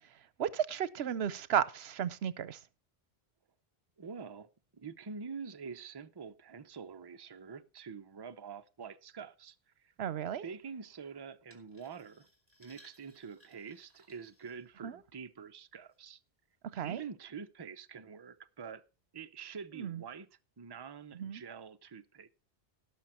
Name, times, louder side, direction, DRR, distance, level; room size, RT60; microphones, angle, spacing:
voice 1, 0.4-2.6 10.0-10.4 14.8-14.9 16.7-17.0 19.8-20.0 21.1-21.4, right 9 dB, 75° right, 1.0 m, -34 dB
voice 2, 4.0-9.9 10.4-12.3 12.6-16.2 16.8-18.8 19.1-20.3 20.6-22.3, right 6 dB, 30° right, 0.6 m, -46 dB
sound 1, 11.5-15.1 15.7-16.0 16.5-16.6, right 1 dB, 10° right, 3.3 m, -64 dB
18.0 x 6.2 x 4.4 m
omnidirectional pair, 1.1 m